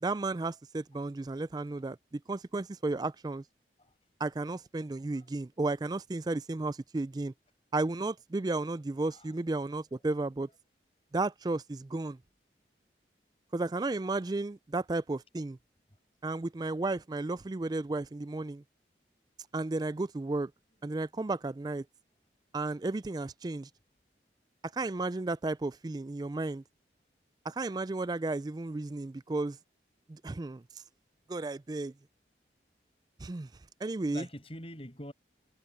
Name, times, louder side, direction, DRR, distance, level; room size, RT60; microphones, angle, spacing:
voice 1, 0.0-3.4 4.2-7.3 7.7-10.5 11.1-12.2 13.5-15.6 16.2-18.6 19.5-20.5 20.8-21.8 22.5-23.7 24.7-26.6 27.4-29.6 30.1-30.6 31.3-31.9 33.2-33.5 33.8-34.3, right 2 dB, 25° right, 0.4 m, -33 dB
voice 2, 34.0-35.1, equal, 35° left, 6.3 m, -46 dB
head